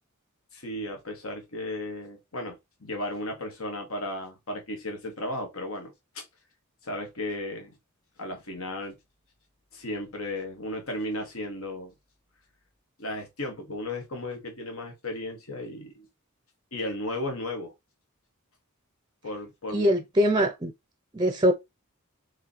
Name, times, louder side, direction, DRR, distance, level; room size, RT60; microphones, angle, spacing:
voice 1, 0.5-6.2 6.8-7.8 8.2-9.0 9.7-11.9 13.0-16.1 16.7-17.7 19.2-19.9 20.2-20.5, left 1 dB, 85° left, 1.6 m, -35 dB
voice 2, 19.7-20.7 21.1-21.5, equal, 20° right, 0.5 m, -22 dB
4.8 x 3.1 x 3.0 m
head